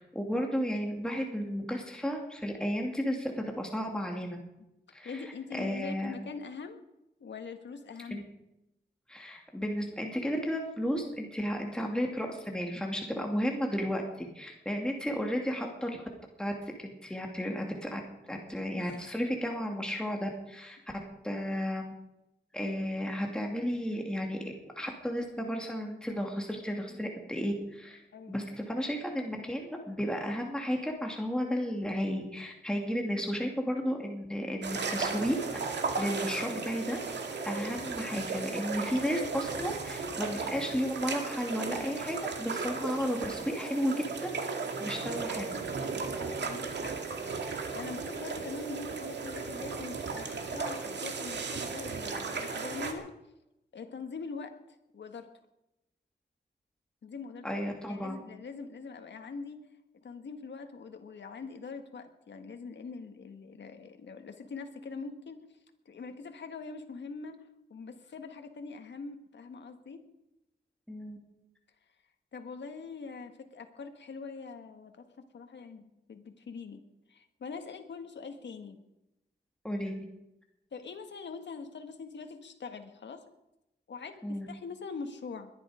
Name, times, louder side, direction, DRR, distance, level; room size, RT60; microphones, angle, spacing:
voice 1, 0.0-4.4 4.9-5.2 5.5-6.1 8.1-8.2 9.1-14.0 14.3-16.0 16.4-18.0 18.3-20.8 21.2-21.9 22.5-28.0 28.3-35.6 35.9-43.9 44.2-44.3 44.8-45.5 57.4-58.2 70.9-71.2 79.6-80.1 84.2-84.5, equal, 5° left, 1 dB, 2.7 m, -33 dB
voice 2, 5.0-6.8 7.2-8.2 18.7-19.1 26.9-27.0 28.1-28.5 46.2-47.0 47.7-53.1 53.7-55.3 57.0-59.6 60.0-65.5 65.8-70.0 72.3-76.8 77.1-78.8 80.7-83.2 83.9-85.5, left 4 dB, 80° left, 6 dB, 1.8 m, -43 dB
sound 1, 34.6-52.9, right 4 dB, 75° right, 2.2 m, -36 dB
21.5 x 11.0 x 5.1 m, 0.90 s
wide cardioid pair, 105°, 18 cm